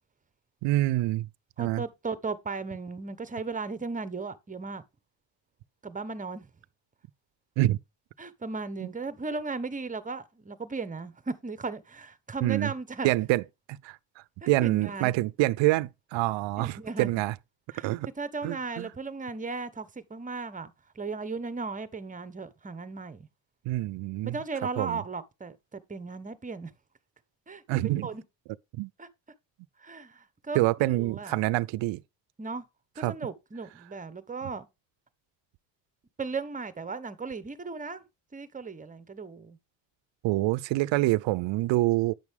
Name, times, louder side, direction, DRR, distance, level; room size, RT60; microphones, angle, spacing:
voice 1, 0.6-1.3 1.6-1.8 7.6-7.8 8.8-8.9 12.4-12.7 13.0-13.4 13.7-17.3 17.8-18.1 18.4-18.9 23.7-24.4 24.8-25.0 27.7-28.1 28.7-28.9 30.5-32.0 33.0-33.1 40.2-42.1, right 18 dB, 70° right, 0.6 m, -26 dB
voice 2, 1.6-4.8 5.8-6.5 8.2-13.1 14.4-15.1 16.6-17.1 17.7-23.3 24.2-26.7 27.5-28.2 29.0-29.1 29.8-30.6 30.9-31.3 32.4-32.7 33.0-34.7 36.2-38.0 38.3-39.6, right 4 dB, 15° right, 0.8 m, -36 dB
9.1 x 6.1 x 3.5 m
cardioid pair, 110°, 47 cm